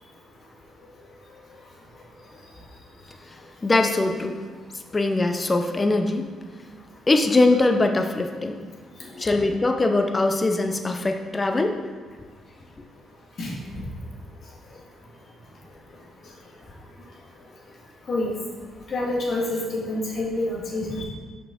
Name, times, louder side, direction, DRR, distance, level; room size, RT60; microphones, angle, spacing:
voice 1, 3.6-4.4 4.9-6.3 7.1-8.6 9.0-11.7, left 2 dB, 25° left, 5 dB, 0.6 m, -22 dB
voice 2, 18.9-21.0, left 2 dB, 50° left, -3 dB, 1.7 m, -27 dB
6.2 x 5.5 x 3.8 m, 1.5 s
cardioid pair, 90°, 0 cm